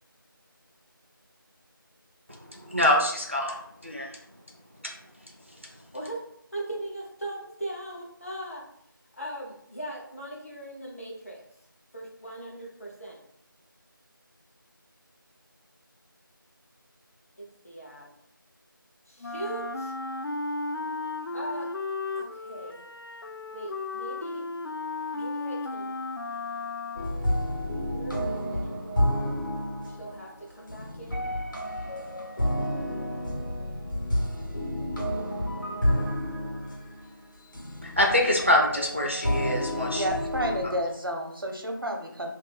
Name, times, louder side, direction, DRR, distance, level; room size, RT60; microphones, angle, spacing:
voice 1, 2.5-3.5 3.8-4.2 4.8-4.9 37.8-40.1, left 1 dB, 35° right, -1 dB, 0.4 m, -25 dB
voice 2, 6.5-8.6 9.2-11.4 11.9-13.2 17.4-18.0 19.1-19.9 21.3-21.7 22.1-22.8 23.5-24.5 25.1-25.9 27.7-28.8 29.9-31.3 35.6-36.1, right 1 dB, 40° left, -3 dB, 0.8 m, -39 dB
Wind instrument woodwind instrument, 19.2-27.4, left 3 dB, 90° left, 0.4 m, -34 dB
sound 1, 27.0-40.7, equal, 60° left, 1.2 m, -30 dB
voice 3, 39.9-42.3, equal, 80° right, 2 dB, 0.7 m, -30 dB
2.6 x 2.3 x 3.9 m, 0.71 s
figure-of-eight pair, 175°, 12 cm